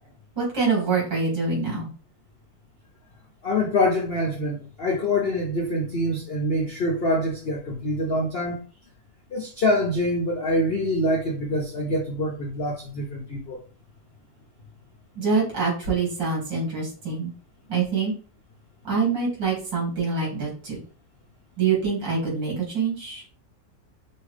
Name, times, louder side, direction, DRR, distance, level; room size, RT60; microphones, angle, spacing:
voice 1, 0.4-1.9 15.2-17.3 17.7-18.1 18.8-20.8 21.6-23.2, right 4 dB, 85° right, 2.9 m, -25 dB
voice 2, 3.4-8.6 9.3-13.6, left 1 dB, 70° left, 0.5 m, -25 dB
5.6 x 2.5 x 3.2 m
omnidirectional pair, 1.9 m